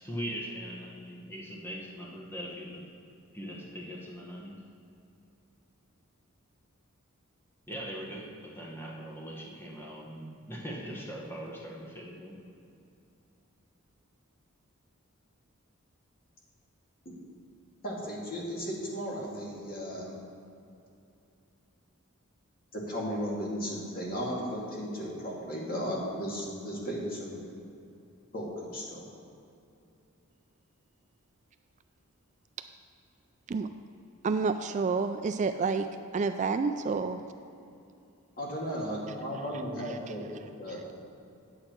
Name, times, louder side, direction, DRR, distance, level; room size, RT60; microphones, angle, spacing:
voice 1, 0.0-2.8 3.3-4.6 7.7-12.4, equal, 10° left, -3 dB, 1.2 m, -40 dB
voice 2, 17.8-20.2 22.7-27.4 28.3-29.0 38.4-40.3 40.6-40.8, equal, 45° left, -4 dB, 2.2 m, -35 dB
voice 3, 34.2-35.9 36.1-37.2 39.9-40.0, right 4 dB, 35° right, 8 dB, 0.3 m, -29 dB
9.7 x 8.2 x 4.5 m, 2.7 s
head